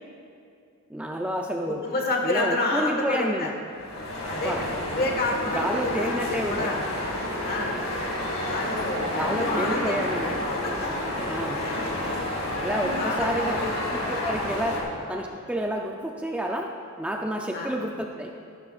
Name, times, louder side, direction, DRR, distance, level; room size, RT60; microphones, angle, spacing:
voice 1, 0.9-1.8 2.2-3.5 4.3-4.6 5.5-6.7 9.0-10.3 11.3-11.6 12.6-13.5 13.9-14.8 15.1-16.7 17.0-18.3, equal, 5° right, 1 dB, 0.4 m, -29 dB
voice 2, 1.7-3.5 4.3-6.8 7.4-7.7 8.5-10.3 10.6-10.7 11.6-12.2 13.0-13.8 14.8-14.9 17.5-17.7, left 2 dB, 45° left, 1 dB, 1.4 m, -29 dB
sound 1, 3.7-14.8, left 1 dB, 85° left, 2.0 m, -30 dB
14.0 x 11.5 x 2.4 m, 2.4 s
head